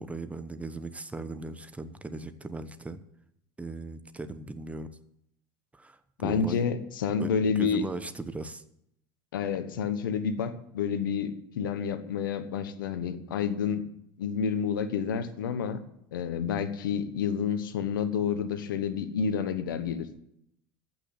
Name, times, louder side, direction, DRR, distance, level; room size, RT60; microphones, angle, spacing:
voice 1, 0.0-3.0 3.6-4.9 5.7-6.6 7.2-8.6, right 2 dB, 10° right, 11 dB, 1.0 m, -38 dB
voice 2, 6.2-7.8 9.3-13.8 14.2-15.8 16.1-20.1, left 6 dB, 85° left, 11 dB, 1.2 m, -29 dB
14.5 x 6.2 x 8.7 m, 0.76 s
hypercardioid pair, 85°, 11 cm